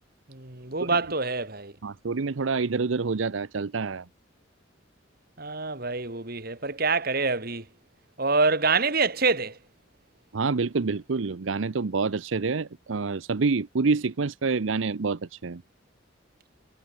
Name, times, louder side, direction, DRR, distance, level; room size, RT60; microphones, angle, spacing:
voice 1, 0.3-1.7 5.4-7.6 8.2-9.6, right 4 dB, 50° right, 3.5 m, -26 dB
voice 2, 1.8-4.0 10.3-15.6, right 4 dB, 80° right, 0.7 m, -27 dB
head